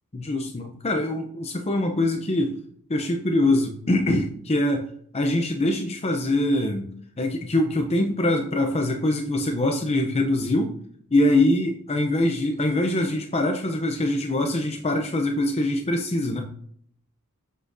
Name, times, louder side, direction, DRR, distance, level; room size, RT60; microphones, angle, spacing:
voice 1, 0.1-2.6 2.9-4.9 5.1-6.9 7.2-10.8 11.1-16.4, left 1 dB, 30° left, 4 dB, 0.7 m, -23 dB
7.4 x 6.2 x 2.7 m, 0.62 s
head